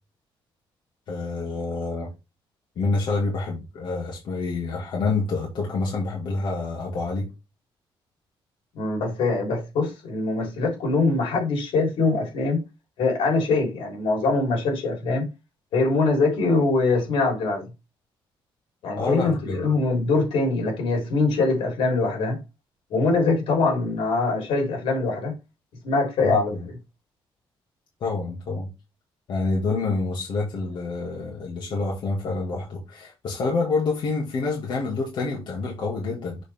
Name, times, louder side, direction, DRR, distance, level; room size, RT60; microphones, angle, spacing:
voice 1, 1.1-2.1 2.8-7.3 18.9-19.6 26.2-26.7 28.0-28.7 29.3-36.4, left 3 dB, 60° left, 2.0 m, -27 dB
voice 2, 8.8-12.6 13.0-15.3 15.7-17.6 18.8-22.4 22.9-25.3 25.8-26.5, left 3 dB, 90° left, 3.8 m, -23 dB
6.8 x 5.0 x 3.6 m
cardioid pair, 165°, 9 cm